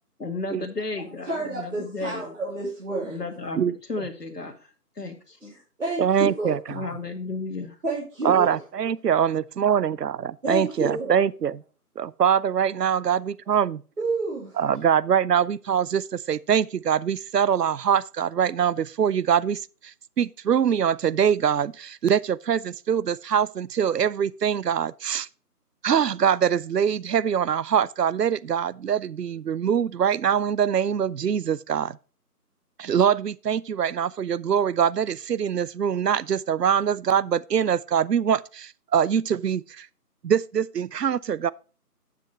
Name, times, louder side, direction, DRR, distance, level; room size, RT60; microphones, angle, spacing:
voice 1, 0.2-2.3 3.1-4.5 5.0-5.6 6.7-7.8, left 3 dB, 80° left, 2.0 m, -33 dB
voice 2, 1.2-3.2 5.8-6.6 7.8-8.6 10.4-11.1 14.0-14.6, right 2 dB, 55° right, 3.0 m, -29 dB
voice 3, 3.5-4.0 6.0-6.6 8.2-11.6 12.0-13.8 14.6-25.3 25.8-32.0 32.8-39.9 40.2-41.5, right 8 dB, 85° right, 0.6 m, -23 dB
9.4 x 7.7 x 3.2 m
figure-of-eight pair, 165°, 47 cm